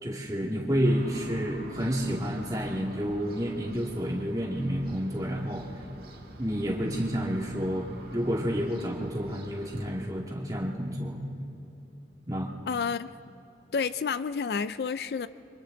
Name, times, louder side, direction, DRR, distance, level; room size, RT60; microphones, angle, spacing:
voice 1, 0.0-5.7 6.4-11.3 12.3-12.5, equal, 20° right, -1 dB, 2.1 m, -30 dB
sound 1, 0.8-10.1, right 1 dB, 55° right, 1.9 m, -46 dB
voice 2, 12.7-13.1 13.7-15.3, left 5 dB, 60° left, 14 dB, 0.4 m, -30 dB
29.5 x 24.0 x 3.9 m, 2.7 s
head